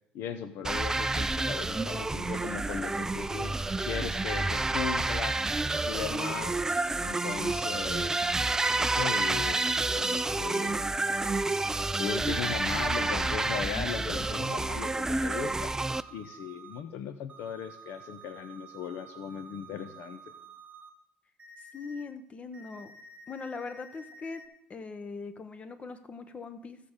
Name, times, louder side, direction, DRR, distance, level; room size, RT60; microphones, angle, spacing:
voice 1, 0.1-3.5 3.8-5.5 5.8-6.6 7.0-8.2 8.8-10.9 12.0-15.7 16.1-20.2, left 8 dB, 75° left, 10 dB, 0.6 m, -38 dB
sound 1, 0.6-16.0, right 2 dB, 15° right, 0.4 m, -29 dB
sound 2, 15.9-16.8 17.3-20.9 21.4-22.0 22.5-24.5, right 4 dB, 35° right, 1.1 m, -51 dB
voice 2, 21.7-22.9 23.3-24.4 24.7-26.8, left 4 dB, 35° left, 10 dB, 1.0 m, -40 dB
15.5 x 6.6 x 3.7 m, 0.81 s
supercardioid pair, 85°, 4 cm